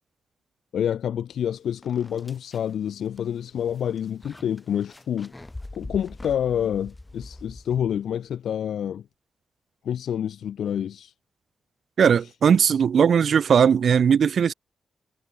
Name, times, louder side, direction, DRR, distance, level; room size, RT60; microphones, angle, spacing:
voice 1, 0.7-5.3 5.7-9.0 9.8-11.1, left 9 dB, 85° left, 2.2 m, -28 dB
sound 1, 1.3-1.4 1.8-8.2, left 2 dB, 15° left, 4.5 m, -43 dB
voice 2, 12.0-14.5, right 7 dB, 60° right, 2.0 m, -18 dB
wide cardioid pair, 125°, 0 cm